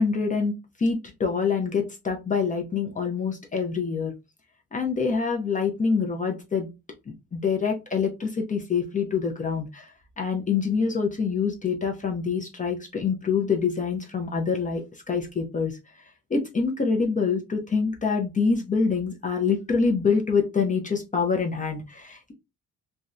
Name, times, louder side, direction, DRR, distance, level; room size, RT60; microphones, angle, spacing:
voice 1, 0.0-4.1 4.7-6.7 7.1-15.8 16.3-22.3, left 5 dB, 25° left, 2 dB, 0.6 m, -26 dB
2.6 x 2.1 x 2.4 m, 0.25 s
cardioid pair, 90°, 30 cm